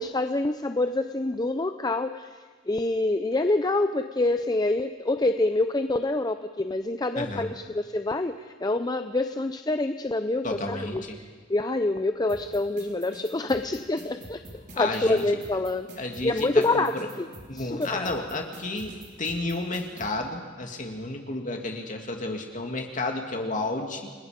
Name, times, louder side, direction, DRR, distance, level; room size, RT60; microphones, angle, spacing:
voice 1, 0.0-2.4 2.7-11.0 11.5-15.9 16.2-17.3 17.5-18.1, left 2 dB, 20° left, 9 dB, 0.5 m, -26 dB
voice 2, 7.1-7.5 10.4-11.2 14.7-15.2 16.0-17.1 17.5-24.1, left 2 dB, 40° left, 3 dB, 2.5 m, -32 dB
sound 1, 12.3-20.1, right 1 dB, 40° right, 4.3 m, -45 dB
29.5 x 21.0 x 5.2 m, 1.5 s
head